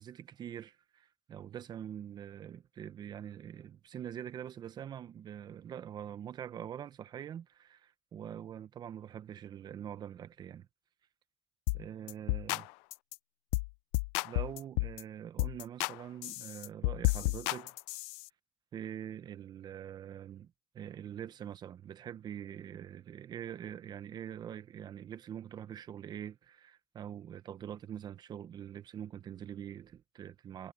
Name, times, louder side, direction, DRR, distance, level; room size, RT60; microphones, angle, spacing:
voice 1, 0.0-10.7 11.7-12.7 14.2-17.7 18.7-30.7, right 9 dB, 50° right, 1.2 m, -44 dB
sound 1, 11.7-11.8 12.1-12.6 12.9-13.1 13.5-13.7 13.9-15.0 15.4-15.9 16.2-18.2, left 24 dB, 85° left, 0.5 m, -32 dB
supercardioid pair, 90°, 9 cm